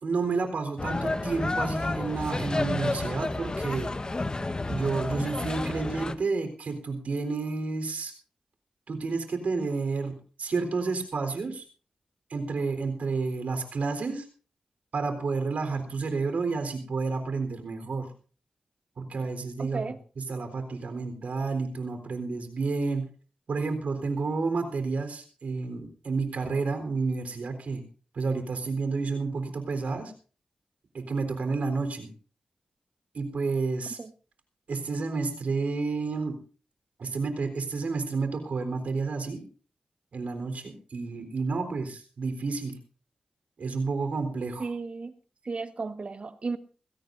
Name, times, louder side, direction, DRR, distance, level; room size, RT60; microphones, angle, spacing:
voice 1, 0.0-3.9 4.7-8.1 8.9-11.6 12.3-14.3 14.9-18.1 19.0-19.8 20.2-23.1 23.5-27.8 28.1-30.1 30.9-32.1 33.1-34.0 34.7-36.4 37.0-39.4 40.1-42.8 43.6-44.7, right 4 dB, 80° right, 3.8 m, -30 dB
sound 1, 0.8-6.1, left 2 dB, 35° left, 1.1 m, -31 dB
voice 2, 19.6-20.0 34.0-34.1 44.6-45.1 45.4-46.6, right 4 dB, 55° right, 1.5 m, -34 dB
21.0 x 16.5 x 2.6 m
cardioid pair, 65°, 2 cm